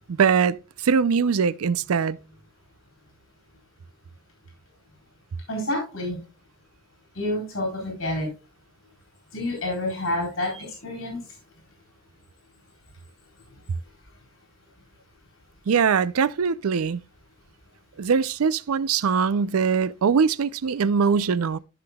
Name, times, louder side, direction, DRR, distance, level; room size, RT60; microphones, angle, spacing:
voice 1, 0.1-0.6 0.8-2.2 15.7-17.0 18.0-21.6, right 6 dB, 90° right, 0.5 m, -22 dB
voice 2, 5.5-6.2 7.1-8.3 9.3-11.2, left 1 dB, 65° left, 4.1 m, -28 dB
14.0 x 5.9 x 2.3 m
head